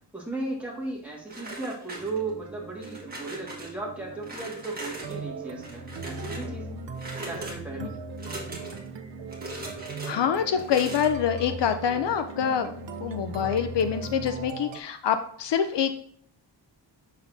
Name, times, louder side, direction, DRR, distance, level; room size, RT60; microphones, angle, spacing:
voice 1, 0.1-6.7 7.2-7.9, right 3 dB, 5° right, -4 dB, 1.7 m, -35 dB
sound 1, 1.3-2.4 2.8-3.7 4.2-5.2 5.6-6.5 7.0-7.6 8.2-8.9 9.3-10.1 10.6-11.1, right 1 dB, 20° right, 1.4 m, -40 dB
sound 2, 1.9-14.5, right 1 dB, 60° right, 0.9 m, -41 dB
sound 3, 5.0-14.8, right 7 dB, 85° right, 0.8 m, -41 dB
voice 2, 10.0-16.0, left 8 dB, 75° left, 8 dB, 0.6 m, -26 dB
7.0 x 6.3 x 2.6 m, 0.62 s
wide cardioid pair, 180°, 43 cm